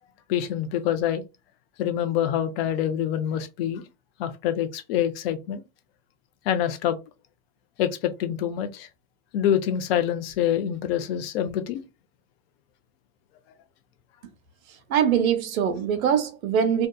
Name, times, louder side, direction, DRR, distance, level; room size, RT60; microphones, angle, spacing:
voice 1, 0.3-1.2 1.8-3.8 4.2-5.6 6.5-7.0 7.8-8.9 9.3-11.8, left 10 dB, 45° left, 0.6 m, -26 dB
voice 2, 14.9-16.9, right 8 dB, 65° right, 0.8 m, -22 dB
2.7 x 2.3 x 2.2 m
hypercardioid pair, 130°, 45 cm